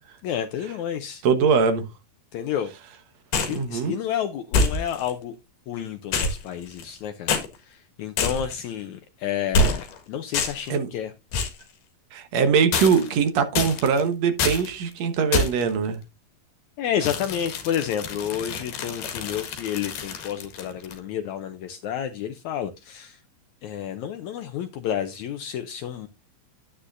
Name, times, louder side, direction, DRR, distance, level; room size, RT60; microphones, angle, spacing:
voice 1, 0.2-1.2 2.3-2.7 3.5-5.4 5.7-11.1 16.8-23.2 23.6-26.1, left 9 dB, 85° left, 1.7 m, -30 dB
voice 2, 1.2-1.8 3.5-3.9 10.7-10.9 12.1-16.0, right 6 dB, 60° right, 1.9 m, -22 dB
sound 1, 3.3-3.6 4.5-5.1 6.1-7.0 7.3-7.5 8.2-8.6 9.5-10.0 10.3-10.7 11.3-11.6 12.7-13.2 13.5-14.0 14.4-14.7 15.3-15.7 17.0-21.0, left 3 dB, 70° left, 3.1 m, -26 dB
9.9 x 9.8 x 2.6 m
omnidirectional pair, 4.2 m